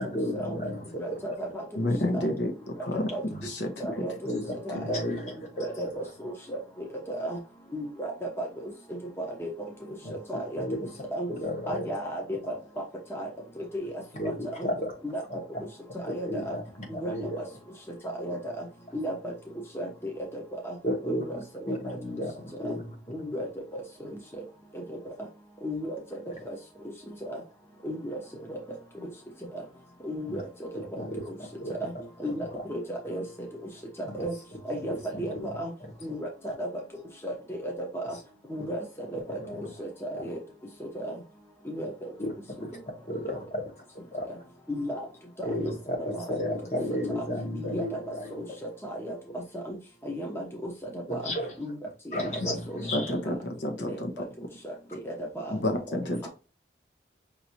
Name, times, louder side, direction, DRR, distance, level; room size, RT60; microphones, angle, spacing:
voice 1, 0.0-1.3 3.3-3.5 4.2-5.9 10.0-10.1 10.5-10.9 11.3-11.9 14.1-14.9 15.3-15.6 16.0-17.4 18.2-18.4 18.9-19.0 20.8-22.9 26.2-26.5 30.3-30.4 30.7-31.9 32.3-32.6 34.0-34.3 34.7-36.5 38.6-38.7 39.1-39.7 40.1-40.3 42.2-42.3 42.6-42.7 43.1-43.6 44.1-44.4 45.4-48.5 51.1-51.5 52.1-53.1 56.0-56.1, left 1 dB, 40° left, 1.4 m, -34 dB
voice 2, 1.0-1.5 2.1-2.3 2.9-3.2 3.8-4.1 4.7-5.0 5.6-6.6 7.1-7.4 7.7-8.1 8.4-8.5 9.2-9.5 10.3-10.6 11.1-11.3 11.7-12.6 13.1-13.3 13.7-13.9 14.6-14.7 15.0-15.2 16.1-16.6 17.0-17.4 18.2-18.6 18.9-19.3 19.7-19.9 20.3-20.7 21.1-22.0 22.6-22.7 23.1-23.5 24.9-25.0 25.6-26.0 26.5-26.6 27.8-28.2 28.5-28.6 30.0-30.4 31.7-31.9 32.2-33.2 34.2-34.3 34.7-35.7 36.0-36.3 36.6-36.7 37.2-38.1 38.5-38.8 39.3-39.4 39.8-40.4 40.9-41.1 41.7-42.1 44.7-45.0 46.1-46.2 47.1-47.2 47.6-48.0 48.9-49.2 49.7-49.8 50.0-50.7 51.1-51.3 51.6-51.8 52.1-52.8 53.9-54.0 54.6-54.7 55.1-55.2 55.5-55.6, equal, 15° left, 0.8 m, -34 dB
voice 3, 1.8-2.5 2.8-3.1 3.4-3.7 4.0-4.1 52.9-54.3 55.5-56.3, left 1 dB, 80° left, 0.9 m, -29 dB
5.6 x 2.6 x 2.9 m
head